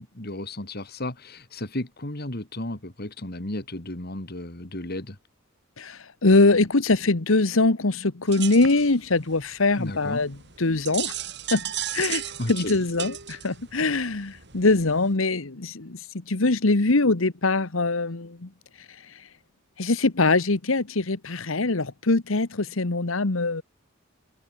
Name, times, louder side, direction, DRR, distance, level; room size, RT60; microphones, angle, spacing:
voice 1, 0.0-5.2 9.8-10.3 12.4-12.8, left 1 dB, 50° left, 2.8 m, -34 dB
voice 2, 5.8-11.1 11.5-11.7 11.9-12.2 12.5-18.5 19.8-23.6, left 3 dB, 75° left, 1.3 m, -23 dB
sound 1, 8.3-15.1, right 11 dB, 55° right, 7.1 m, -36 dB
head